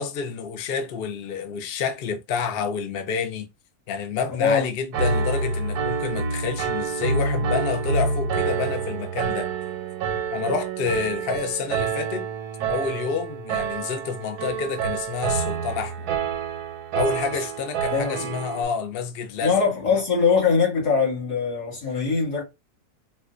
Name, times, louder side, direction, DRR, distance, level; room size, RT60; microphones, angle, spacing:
voice 1, 0.0-3.5 3.9-9.5 10.3-12.3 12.7-16.1 16.9-19.5, left 6 dB, 60° left, 0.6 m, -28 dB
Piano, 4.9-18.6, right 5 dB, 80° right, 1.2 m, -27 dB
voice 2, 17.9-18.3 19.4-22.4, left 5 dB, 75° left, 2.5 m, -22 dB
4.3 x 2.2 x 2.4 m
omnidirectional pair, 1.7 m